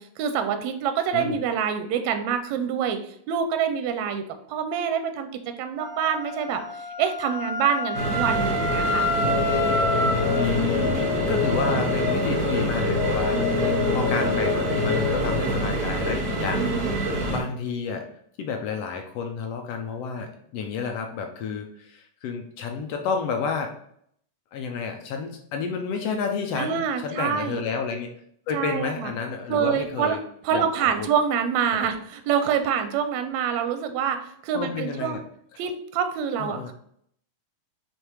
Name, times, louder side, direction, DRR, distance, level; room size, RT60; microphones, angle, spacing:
voice 1, 0.0-3.0 3.3-4.2 4.5-6.6 7.0-9.1 16.6-17.0 26.6-27.6 28.5-29.1 29.5-30.2 30.5-35.2 35.6-36.7, right 7 dB, 80° right, 8 dB, 1.9 m, -26 dB
Wind instrument woodwind instrument, 5.8-10.5, left 1 dB, 30° left, 0.6 m, -28 dB
sound 1, 7.9-17.4, right 2 dB, 45° right, 1.4 m, -27 dB
sound 2, 9.2-15.4, left 5 dB, 90° left, 1.0 m, -26 dB
voice 2, 10.3-13.7 13.9-18.1 18.4-23.7 24.5-28.1 28.5-30.2 30.5-31.1 31.7-31.9 34.5-35.2 35.5-35.6 36.4-36.7, left 5 dB, 75° left, 4 dB, 1.5 m, -30 dB
5.1 x 4.3 x 4.6 m, 0.67 s
omnidirectional pair, 3.4 m